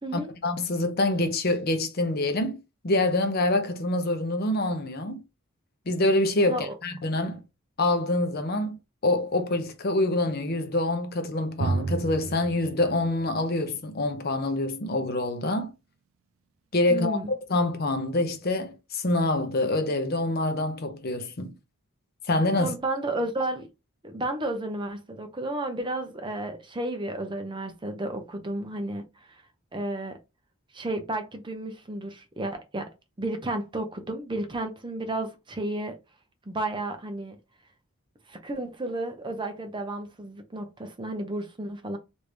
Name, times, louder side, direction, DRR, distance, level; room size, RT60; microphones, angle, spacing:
voice 1, 0.1-2.6 2.8-5.2 5.9-7.4 7.8-15.7 16.7-21.5 22.3-22.7, left 2 dB, 45° left, 0.6 m, -26 dB
Drum, 11.6-15.1, right 3 dB, 75° right, 0.4 m, -33 dB
voice 2, 16.9-17.3 22.6-23.7 24.0-29.4 29.7-30.2 30.7-32.9 33.2-35.9 36.5-37.4 38.3-42.0, right 1 dB, 20° right, 0.6 m, -32 dB
3.2 x 2.6 x 3.2 m
head